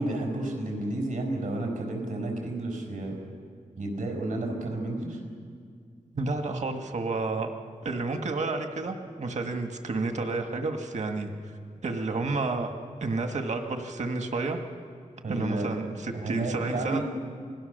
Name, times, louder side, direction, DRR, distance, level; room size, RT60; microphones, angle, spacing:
voice 1, 0.0-3.2 3.8-5.2 15.2-15.7 16.1-17.0, right 2 dB, 80° right, 2 dB, 5.7 m, -31 dB
voice 2, 6.2-7.5 7.8-11.3 11.8-12.7 13.0-14.6 15.3-17.0, right 3 dB, 60° right, 5 dB, 1.7 m, -30 dB
27.0 x 19.5 x 6.7 m, 2.1 s
wide cardioid pair, 100°, 14 cm